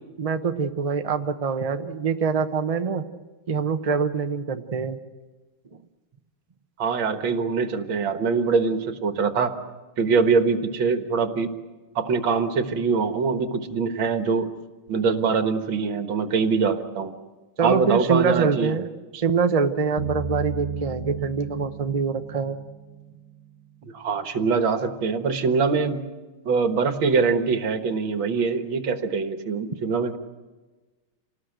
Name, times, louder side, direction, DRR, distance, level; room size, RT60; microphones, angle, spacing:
voice 1, 0.2-3.0 3.5-5.0 17.6-22.6, right 5 dB, 50° right, 7 dB, 0.4 m, -24 dB
voice 2, 6.8-9.6 10.0-11.5 12.0-14.5 14.9-17.1 17.6-18.8 23.8-26.0 26.5-30.2, right 5 dB, 70° right, 7 dB, 2.2 m, -23 dB
sound 1, 20.0-23.7, right 3 dB, 50° left, 4.4 m, -35 dB
27.5 x 19.0 x 7.9 m, 1.3 s
omnidirectional pair, 2.3 m